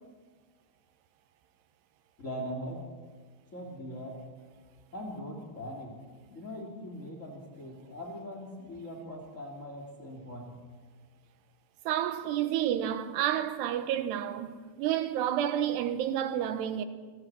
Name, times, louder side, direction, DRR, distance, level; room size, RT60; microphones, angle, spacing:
voice 1, 2.2-2.8 3.5-4.1 4.9-5.9 6.3-10.5, equal, 20° left, 2.9 m, -41 dB
voice 2, 11.9-16.9, right 10 dB, 90° right, 3.3 m, -30 dB
28.0 x 21.5 x 6.2 m
omnidirectional pair, 4.6 m